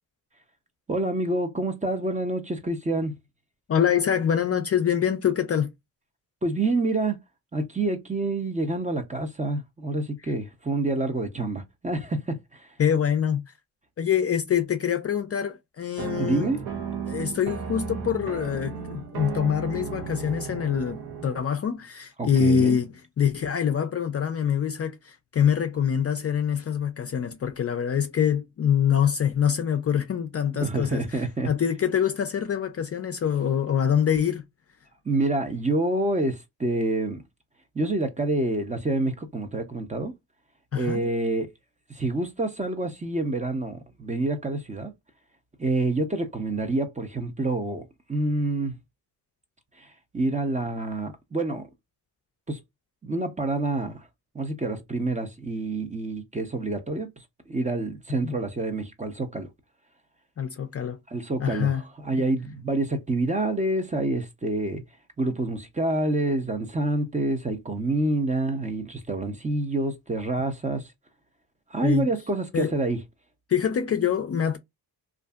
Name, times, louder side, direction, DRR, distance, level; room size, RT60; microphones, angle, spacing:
voice 1, 0.9-3.1 6.4-7.2 7.5-12.7 16.1-16.6 22.2-22.8 30.6-31.5 35.0-37.2 37.7-40.1 40.7-41.5 41.9-44.9 45.6-48.7 49.8-51.7 52.5-52.6 53.0-54.1 54.3-59.5 61.1-64.8 65.2-70.9 71.7-73.0, right 2 dB, 20° right, 0.6 m, -27 dB
voice 2, 3.7-5.7 12.8-13.4 14.0-16.5 17.1-34.4 40.7-41.0 58.2-58.4 60.4-61.0 61.4-61.8 71.8-72.1 72.5-72.7 73.5-74.6, left 8 dB, 40° left, 0.4 m, -25 dB
sound 1, 16.0-21.5, right 6 dB, 70° right, 0.9 m, -34 dB
2.6 x 2.5 x 2.3 m
cardioid pair, 80°, 40 cm